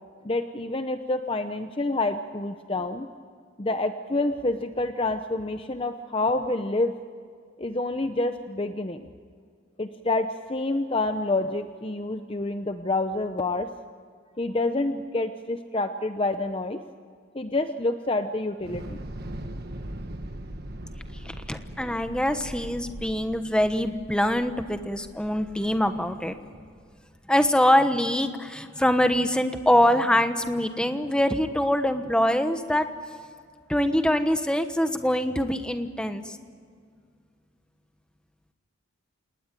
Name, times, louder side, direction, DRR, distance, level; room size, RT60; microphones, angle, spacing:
voice 1, 0.2-3.1 3.6-6.9 7.6-9.1 9.8-13.7 14.4-16.8 17.3-19.0, left 2 dB, 25° left, 8 dB, 0.7 m, -28 dB
Thunder / Explosion, 18.6-26.8, right 1 dB, 45° right, 1.6 m, -40 dB
voice 2, 21.2-26.4 27.3-32.9 33.7-36.4, left 1 dB, 5° left, 8 dB, 1.1 m, -24 dB
27.5 x 19.5 x 9.1 m, 2.1 s
head